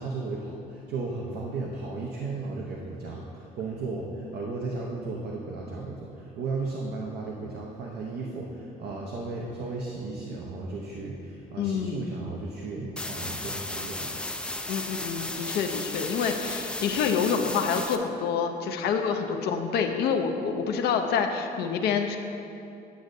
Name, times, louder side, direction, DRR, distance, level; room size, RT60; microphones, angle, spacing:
voice 1, 0.0-14.2, right 3 dB, 75° right, -2 dB, 0.8 m, -35 dB
voice 2, 11.6-12.1 14.7-22.2, left 6 dB, 70° left, 4 dB, 0.5 m, -27 dB
sound 1, 13.0-18.0, left 2 dB, 5° left, 0.3 m, -34 dB
10.0 x 6.3 x 2.6 m, 2.7 s
cardioid pair, 110°, 17 cm